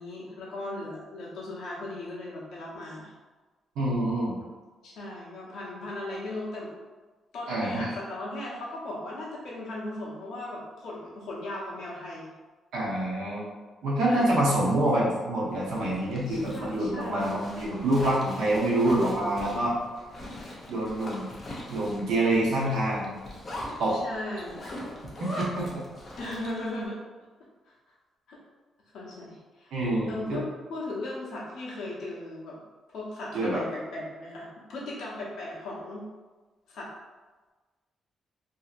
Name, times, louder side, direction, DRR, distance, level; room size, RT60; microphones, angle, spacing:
voice 1, 0.0-3.1 4.8-6.7 7.3-12.3 14.1-14.4 16.3-17.3 23.9-24.7 26.2-27.0 27.7-27.8 28.3-28.4 28.9-29.7 30.1-32.6 32.9-36.1 36.7-36.9, left 1 dB, 75° left, -5 dB, 0.8 m, -37 dB
voice 2, 3.8-4.3 7.5-7.9 12.7-13.4 13.8-19.7 20.7-21.2 21.7-23.1 23.8-24.0 25.4-25.8 29.7-30.4 33.3-33.6, right 1 dB, 85° right, -5 dB, 0.9 m, -26 dB
Zipper (clothing), 15.5-26.7, left 1 dB, 30° left, 0.5 m, -41 dB
2.7 x 2.7 x 2.4 m, 1.3 s
cardioid pair, 165°, 0 cm